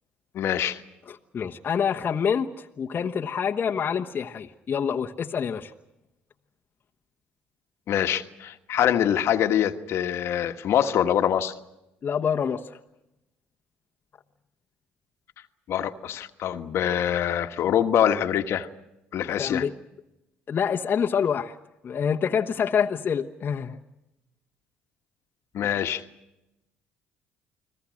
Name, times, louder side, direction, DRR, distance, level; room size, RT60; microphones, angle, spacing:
voice 1, 0.3-0.8 7.9-11.5 15.7-18.7 19.1-19.6 25.5-26.0, left 10 dB, 60° left, 8 dB, 1.4 m, -24 dB
voice 2, 1.1-5.7 12.0-12.7 19.4-19.7 20.5-21.6 21.8-23.8, left 7 dB, 45° left, 2 dB, 1.1 m, -26 dB
30.0 x 20.5 x 6.4 m, 0.91 s
supercardioid pair, 70°, 5 cm